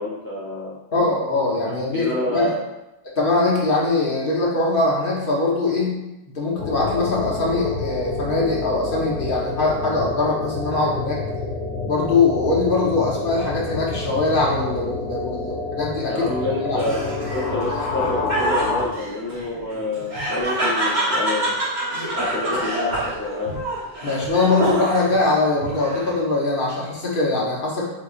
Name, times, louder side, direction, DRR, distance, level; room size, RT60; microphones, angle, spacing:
voice 1, 0.0-0.8 1.9-2.6 16.1-21.5 22.1-23.5, left 2 dB, 15° left, -8 dB, 0.6 m, -28 dB
voice 2, 0.9-2.5 3.2-6.0 6.3-11.2 11.8-16.3 16.6-16.9 24.0-27.9, left 3 dB, 55° left, -3 dB, 0.9 m, -22 dB
sound 1, 6.6-18.9, left 3 dB, 85° left, 1.0 m, -28 dB
Laughter, 16.8-25.2 25.6-26.3, right 1 dB, 45° right, 1.2 m, -26 dB
3.9 x 3.1 x 2.4 m, 0.94 s
omnidirectional pair, 1.2 m